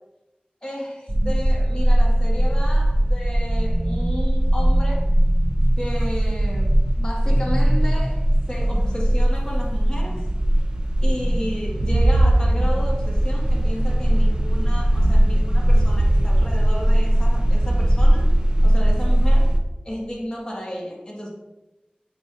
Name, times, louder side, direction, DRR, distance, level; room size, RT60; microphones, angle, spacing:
voice 1, 0.6-5.1 5.8-6.7 7.0-10.3 11.0-18.3 18.6-19.5 19.8-21.3, equal, 30° left, -4 dB, 1.9 m, -33 dB
sound 1, 1.1-19.6, right 1 dB, 25° right, 0.8 m, -19 dB
7.5 x 4.9 x 2.7 m, 0.99 s
wide cardioid pair, 45°, 3 cm